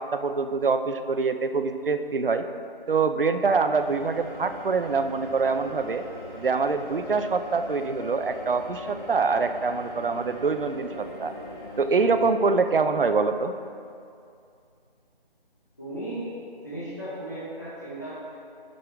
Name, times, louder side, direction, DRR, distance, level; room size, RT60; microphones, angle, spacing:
voice 1, 0.0-2.4 2.9-6.0 6.3-11.3 11.8-13.5, right 4 dB, 65° right, 9 dB, 0.6 m, -25 dB
sound 1, 3.7-12.3, left 1 dB, 15° right, 1.0 m, -40 dB
voice 2, 15.8-16.3 16.6-18.1, right 1 dB, 20° left, -11 dB, 1.1 m, -35 dB
11.5 x 5.3 x 3.4 m, 2.4 s
figure-of-eight pair, 180°, 30 cm